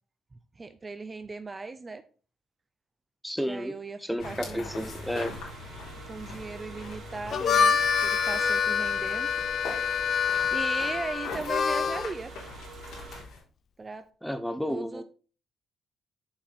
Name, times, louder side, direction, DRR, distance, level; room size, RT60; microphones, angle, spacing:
voice 1, 0.6-2.0 3.5-4.7 6.1-9.3 10.5-12.3 13.8-14.1 14.7-15.0, right 3 dB, 25° right, 10 dB, 0.7 m, -38 dB
voice 2, 3.2-5.3 14.2-15.0, equal, ahead, 11 dB, 0.9 m, -32 dB
sound 1, 4.2-13.4, left 3 dB, 85° left, 3.8 m, -43 dB
sound 2, 4.6-13.2, right 3 dB, 60° right, 2.7 m, -45 dB
Harmonica, 7.2-12.1, left 6 dB, 55° left, 0.7 m, -26 dB
7.5 x 5.4 x 4.3 m, 0.37 s
cardioid pair, 90°, 0 cm